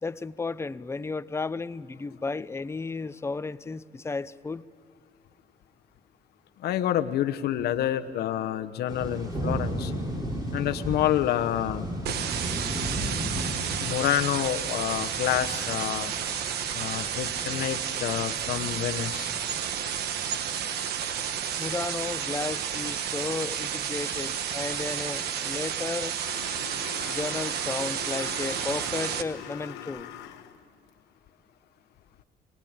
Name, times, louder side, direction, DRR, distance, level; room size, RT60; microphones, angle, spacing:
voice 1, 0.0-4.6 21.6-26.1 27.1-30.1, left 3 dB, 15° left, 15 dB, 0.6 m, -33 dB
voice 2, 6.6-9.9 10.5-11.9 13.3-13.4 13.7-16.1 16.7-19.3, left 12 dB, 70° left, 8 dB, 1.0 m, -28 dB
sound 1, 8.9-24.9, equal, 25° right, 6.2 m, -37 dB
sound 2, 12.1-29.2, right 8 dB, 70° right, 1.3 m, -31 dB
sound 3, 26.2-30.6, left 11 dB, 85° left, 1.3 m, -42 dB
24.5 x 20.0 x 8.8 m, 2.6 s
cardioid pair, 110°, 17 cm